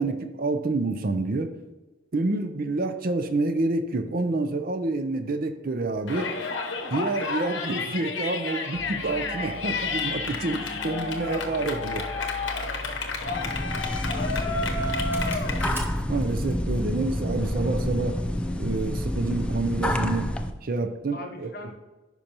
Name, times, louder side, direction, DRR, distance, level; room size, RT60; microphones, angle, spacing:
voice 1, 0.0-1.5 2.1-6.3 6.9-12.1 16.1-18.2 18.6-20.3 20.6-21.5, right 2 dB, 50° right, 8 dB, 0.5 m, -28 dB
Yell, 6.1-15.8, left 4 dB, 75° left, 0.9 m, -31 dB
Engine starting, 8.7-16.6, equal, 10° right, 0.8 m, -41 dB
sound 1, 13.2-20.5, left 1 dB, 5° left, 0.3 m, -28 dB
voice 2, 13.3-14.9 21.1-21.8, left 1 dB, 50° left, 5 dB, 0.9 m, -41 dB
10.0 x 5.4 x 2.9 m, 1.2 s
head